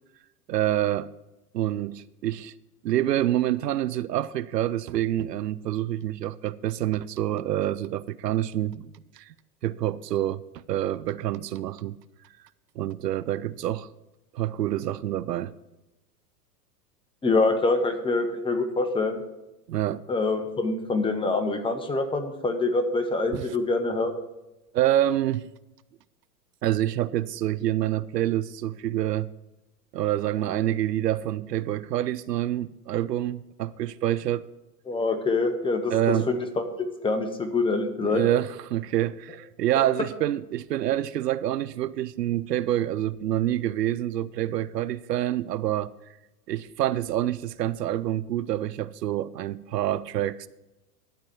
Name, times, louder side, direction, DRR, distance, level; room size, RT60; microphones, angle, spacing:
voice 1, 0.5-1.1 1.5-2.5 2.8-9.3 9.6-12.0 12.8-13.9 14.3-15.5 19.7-20.0 23.3-23.6 24.7-25.5 26.6-29.3 29.9-34.5 35.9-36.3 38.0-45.9 46.5-50.5, right 13 dB, 85° right, 0.6 m, -27 dB
voice 2, 17.2-19.2 20.1-24.1 34.9-35.9 36.3-38.2, left 3 dB, 10° left, 1.1 m, -25 dB
11.5 x 4.2 x 7.7 m
hypercardioid pair, 100°, 47 cm